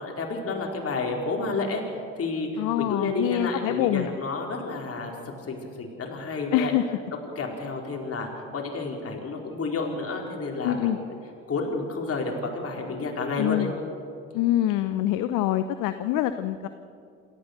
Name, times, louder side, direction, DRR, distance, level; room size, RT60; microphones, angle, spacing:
voice 1, 0.0-1.8 2.2-5.1 5.5-6.7 7.4-10.9 11.5-13.7, left 3 dB, 40° left, 0 dB, 4.5 m, -30 dB
voice 2, 2.6-4.1 6.5-7.0 10.6-11.0 13.4-13.7 14.3-16.7, left 12 dB, 65° left, 11 dB, 0.8 m, -25 dB
27.5 x 14.0 x 6.8 m, 2.5 s
hypercardioid pair, 50°, 35 cm